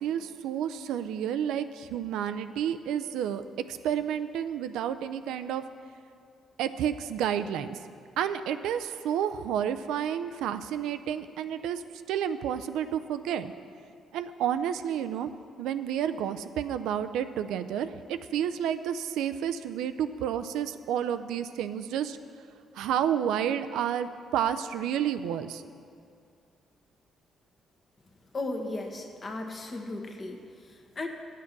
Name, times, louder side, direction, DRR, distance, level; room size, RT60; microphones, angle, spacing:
voice 1, 0.0-5.6 6.6-7.8 8.2-11.8 12.1-13.5 14.1-15.3 15.6-22.2 22.8-25.6, right 9 dB, 90° right, 10 dB, 0.4 m, -30 dB
voice 2, 28.3-31.1, left 2 dB, 40° left, 3 dB, 1.2 m, -36 dB
9.9 x 7.5 x 5.9 m, 2.3 s
cardioid pair, 90°, 0 cm